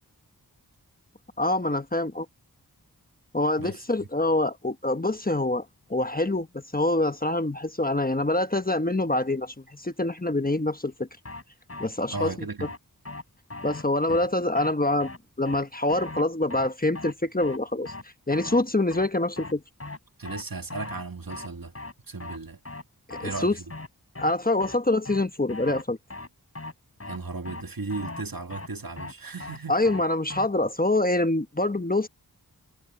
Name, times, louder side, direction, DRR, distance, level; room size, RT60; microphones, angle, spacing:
voice 1, 1.4-2.3 3.3-5.6 5.9-11.1 11.8-12.5 13.6-17.9 18.3-19.6 23.2-23.6 24.2-26.0 29.7-32.1, left 2 dB, 25° left, 1.1 m, -25 dB
voice 2, 3.6-4.1 12.1-12.7 14.1-14.2 20.2-21.7 22.1-22.6 23.2-23.7 27.1-29.8, right 3 dB, 60° right, 1.9 m, -36 dB
sound 1, 11.3-11.4 11.7-11.9 12.2-12.3 12.6-12.8 13.1-13.2 13.5-13.8 14.1-14.3 14.6-14.7 15.0-15.2 15.5-15.6 15.9-16.2 16.5-16.7 17.0-17.1 17.4-17.6 17.9-18.0 18.3-18.6 18.9-19.1 19.4-19.5 19.8-20.0 20.3-20.4 20.7-21.0 21.3-21.5 21.8-21.9 22.2-22.4 22.7-22.8 23.1-23.4 23.7-23.9 24.2-24.3 24.6-24.8 25.1-25.2 25.5-25.8 26.1-26.3 26.6-26.7 27.0-27.2 27.5-27.6 27.9-28.2 28.5-28.7 29.0-29.1 29.4-29.6 29.9-30.0 30.3-30.5, left 2 dB, 40° left, 3.6 m, -38 dB
wide cardioid pair, 55°, 38 cm